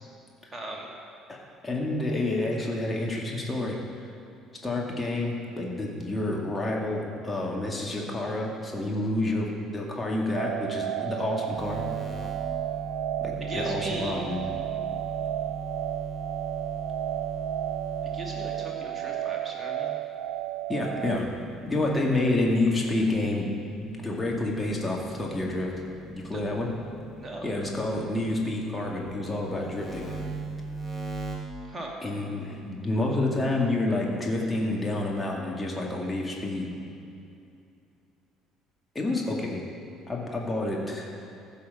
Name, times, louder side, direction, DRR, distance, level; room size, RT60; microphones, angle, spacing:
voice 1, 0.5-0.9 13.4-14.2 18.1-19.9 26.3-26.4 27.2-27.5 31.7-31.9, right 1 dB, 20° right, -1 dB, 2.2 m, -38 dB
voice 2, 1.6-3.8 4.6-9.5 9.7-11.8 13.2-14.5 20.7-21.3 21.7-23.5 23.7-25.7 26.1-26.7 27.4-30.0 32.0-36.7 38.9-39.6 40.1-41.1, left 2 dB, 15° left, -2 dB, 2.2 m, -29 dB
sound 1, 10.3-21.2, right 13 dB, 60° right, 0.3 m, -33 dB
sound 2, 11.6-19.0 21.0-23.2 23.7-28.4 28.9-31.4, right 3 dB, ahead, 2.1 m, -40 dB
15.0 x 5.7 x 5.6 m, 2.6 s
figure-of-eight pair, 55°, 0 cm